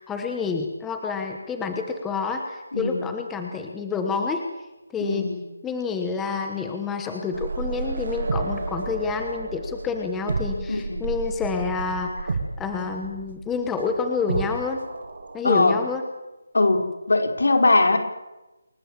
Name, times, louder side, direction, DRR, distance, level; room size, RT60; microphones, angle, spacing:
voice 1, 0.0-4.5 4.9-5.3 5.6-14.8 15.3-16.0, left 5 dB, 5° left, 4 dB, 1.1 m, -28 dB
voice 2, 2.7-3.1 5.0-5.4 10.7-11.1 15.4-15.7 16.5-16.8 17.1-18.0, left 2 dB, 70° left, 5 dB, 4.9 m, -20 dB
sound 1, 7.3-15.4, right 3 dB, 40° right, 3.6 m, -31 dB
28.5 x 21.0 x 7.5 m, 1.0 s
figure-of-eight pair, 180°, 0 cm